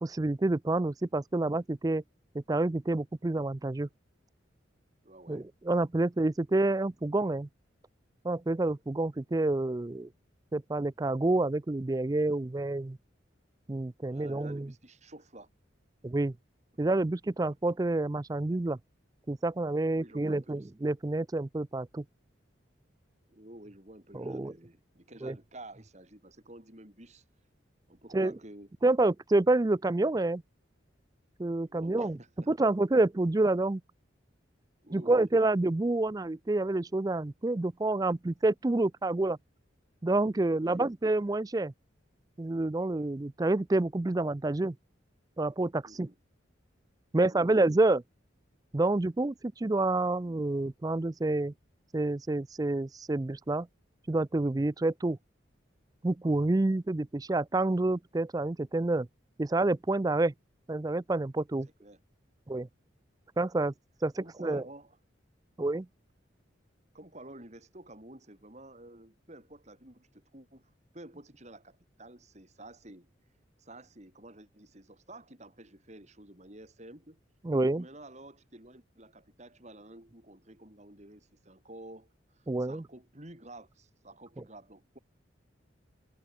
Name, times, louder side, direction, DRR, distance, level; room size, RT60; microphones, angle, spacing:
voice 1, 0.0-2.0 2.3-3.9 5.3-7.5 8.2-10.1 10.5-13.0 13.7-14.7 16.0-16.3 16.8-18.8 19.3-22.0 24.1-24.5 25.2-25.4 28.1-28.3 28.8-30.4 31.4-32.2 32.5-33.8 34.9-39.4 40.0-41.7 42.4-44.8 45.4-46.1 47.1-48.0 48.7-51.5 51.9-53.7 54.1-55.2 56.0-59.1 59.4-60.3 60.7-61.7 62.5-62.7 63.4-63.7 64.0-64.6 65.6-65.9 77.4-77.8 82.5-82.8, right 2 dB, 20° right, 0.4 m, -28 dB
voice 2, 5.0-5.5 14.1-15.5 19.9-20.7 23.3-27.2 27.9-28.7 31.7-32.5 34.8-35.3 40.6-40.8 45.8-46.2 47.2-47.6 61.8-62.0 64.2-65.0 66.9-73.1 73.6-77.2 77.8-85.0, right 1 dB, 35° right, 4.5 m, -51 dB
head